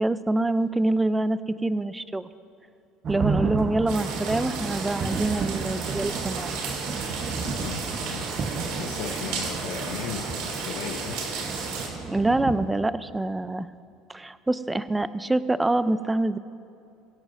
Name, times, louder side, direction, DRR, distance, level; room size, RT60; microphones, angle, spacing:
voice 1, 0.0-2.3 3.1-6.6 12.0-13.7 14.1-16.4, right 2 dB, 15° right, 14 dB, 0.6 m, -25 dB
sound 1, 3.0-12.8, right 5 dB, 40° right, 1.2 m, -32 dB
voice 2, 3.2-3.6 7.1-11.6, left 9 dB, 75° left, 3 dB, 0.9 m, -38 dB
sound 2, 3.9-11.9, right 4 dB, 75° right, 2.9 m, -33 dB
23.0 x 16.0 x 2.7 m, 2.6 s
hypercardioid pair, 80°, 0 cm